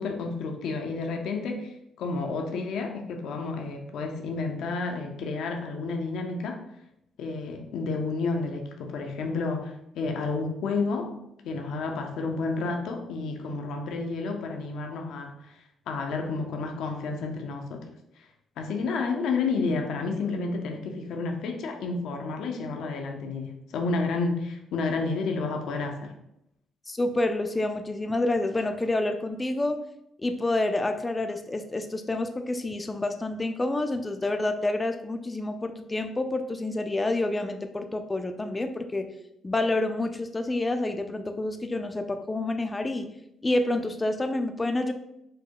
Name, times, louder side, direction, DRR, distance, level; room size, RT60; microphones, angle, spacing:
voice 1, 0.0-6.6 7.2-11.2 11.4-17.9 18.2-18.3 18.6-26.1, left 3 dB, 80° left, 3 dB, 0.6 m, -31 dB
voice 2, 26.9-29.8 30.2-39.1 39.4-43.1 43.4-44.9, left 2 dB, 20° left, 7 dB, 0.4 m, -28 dB
4.6 x 2.1 x 4.5 m, 0.81 s
cardioid pair, 90°, 0 cm